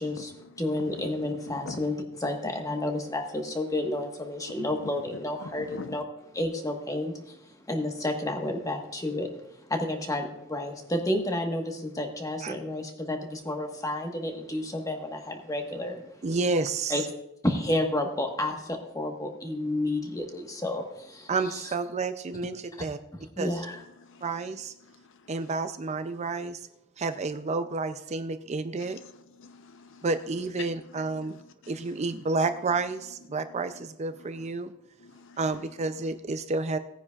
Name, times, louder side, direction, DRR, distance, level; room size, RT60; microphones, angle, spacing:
voice 1, 0.0-6.0 6.3-7.3 7.7-9.3 9.7-16.1 16.9-17.0 17.4-21.3 23.1-23.8, left 1 dB, 15° left, 1.3 m, -31 dB
voice 2, 0.6-1.3 1.5-1.9 5.4-6.0 24.0-24.2 24.9-25.0 28.8-29.1 29.4-30.1 31.6-31.7 35.0-35.4, left 3 dB, 65° left, 0.7 m, -44 dB
voice 3, 16.2-16.9 21.3-23.0 23.4-23.5 24.2-24.7 25.3-26.6 27.0-29.0 30.0-31.4 31.7-34.7 35.4-36.8, right 3 dB, 35° right, 0.4 m, -30 dB
18.5 x 9.7 x 2.4 m
head